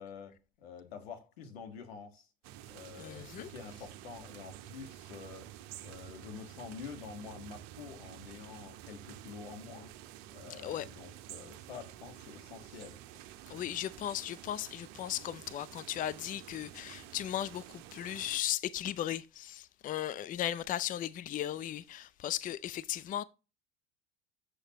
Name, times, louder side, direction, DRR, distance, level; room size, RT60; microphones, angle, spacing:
voice 1, 0.0-2.3 2.7-5.5 5.8-9.9 10.3-13.0, left 6 dB, 80° left, 1.7 m, -48 dB
sound 1, 2.4-18.4, right 13 dB, 60° right, 0.8 m, -50 dB
voice 2, 3.0-3.5 10.6-10.9 13.5-23.2, left 12 dB, 25° left, 0.4 m, -36 dB
7.7 x 6.5 x 3.0 m
hypercardioid pair, 80°, 31 cm